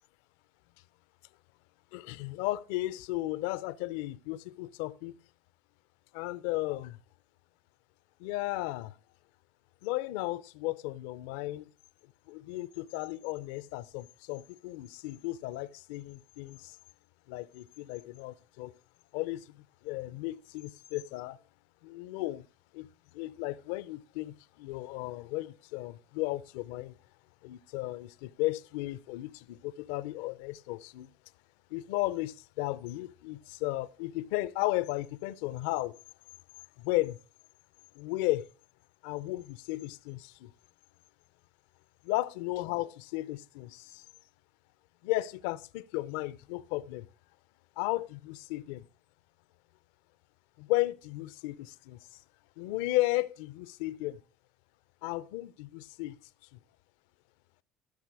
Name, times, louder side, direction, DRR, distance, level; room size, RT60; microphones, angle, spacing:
voice 1, 1.9-5.1 6.1-7.0 8.2-8.9 9.8-11.7 12.3-16.8 17.3-18.7 19.1-21.4 21.8-22.5 22.7-27.0 27.4-31.1 31.7-36.0 36.8-37.2 37.9-38.5 39.0-40.5 42.0-44.0 45.0-47.1 47.8-48.9 50.6-52.2 52.6-54.2 55.0-56.2 56.5-56.6, left 18 dB, 85° left, 0.5 m, -34 dB
14.0 x 6.7 x 4.7 m
supercardioid pair, 110°, 0 cm